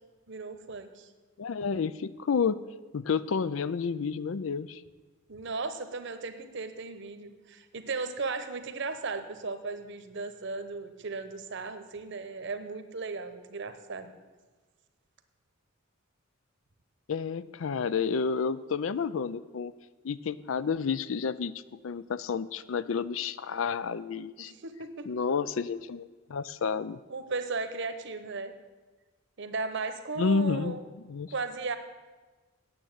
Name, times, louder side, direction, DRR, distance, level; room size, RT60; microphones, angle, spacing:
voice 1, 0.3-1.1 5.3-14.1 24.4-25.1 27.1-28.5 29.4-30.8 31.3-31.8, right 3 dB, 60° right, 10 dB, 1.0 m, -36 dB
voice 2, 1.4-2.6 2.9-4.8 17.1-19.7 20.0-24.5 25.1-27.0 30.2-31.3, left 5 dB, 70° left, 16 dB, 0.5 m, -30 dB
8.8 x 7.8 x 8.8 m, 1.3 s
head